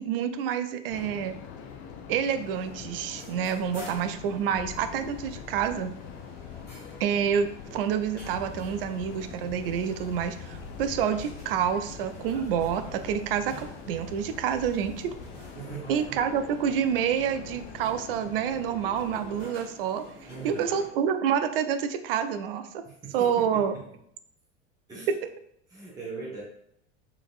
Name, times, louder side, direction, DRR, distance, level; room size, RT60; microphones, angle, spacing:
voice 1, 0.0-1.3 2.1-5.9 7.0-15.1 15.9-20.0 20.4-22.8 23.1-23.7 25.1-25.2, right 8 dB, 50° right, 9 dB, 0.4 m, -28 dB
sound 1, 0.9-19.5, left 7 dB, 35° left, 0.5 m, -44 dB
sound 2, 2.2-20.9, left 1 dB, 85° left, 1.1 m, -49 dB
sound 3, 8.2-15.8, left 2 dB, 70° left, 0.8 m, -46 dB
voice 2, 15.5-16.2 20.3-20.8 22.8-24.0 24.9-25.1 25.7-26.4, right 4 dB, 10° right, -6 dB, 1.0 m, -41 dB
3.9 x 3.2 x 2.4 m, 0.73 s
figure-of-eight pair, 75°, 36 cm